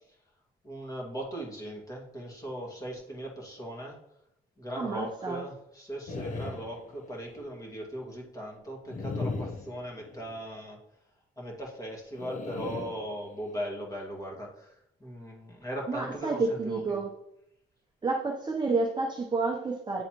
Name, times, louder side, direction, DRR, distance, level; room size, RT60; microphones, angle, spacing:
voice 1, 0.6-4.0 4.6-10.8 11.4-17.0, equal, 15° left, -2 dB, 2.0 m, -39 dB
voice 2, 4.8-5.4 15.9-17.1 18.0-20.0, right 3 dB, 20° right, -1 dB, 0.8 m, -30 dB
sound 1, 6.1-7.4 8.9-10.4 12.1-13.7, left 3 dB, 40° left, 0.7 m, -38 dB
8.9 x 3.9 x 3.0 m, 0.80 s
cardioid pair, 90°, 20 cm